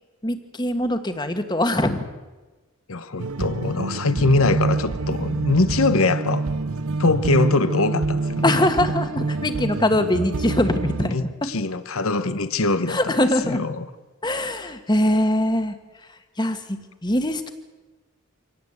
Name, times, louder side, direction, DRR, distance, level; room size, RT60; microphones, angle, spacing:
voice 1, 0.2-2.1 8.4-11.5 12.9-13.7 14.2-15.7 16.4-17.5, left 1 dB, 20° left, 8 dB, 1.6 m, -22 dB
voice 2, 2.9-6.4 7.0-8.6 11.0-13.1 13.5-13.9, left 3 dB, 70° left, 12 dB, 1.1 m, -22 dB
sound 1, 3.2-11.1, right 3 dB, 75° right, 0.8 m, -26 dB
26.0 x 18.0 x 8.1 m, 1.2 s
head